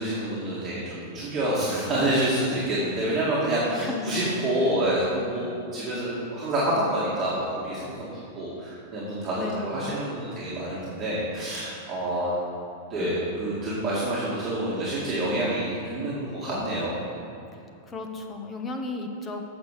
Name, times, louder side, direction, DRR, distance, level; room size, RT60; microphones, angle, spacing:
voice 1, 0.0-12.3 12.9-16.9, right 1 dB, 25° right, -9 dB, 2.2 m, -27 dB
voice 2, 3.8-4.2 9.4-9.9 17.9-19.4, left 3 dB, 20° left, 4 dB, 1.0 m, -34 dB
8.0 x 6.2 x 6.6 m, 2.7 s
supercardioid pair, 140°, 0 cm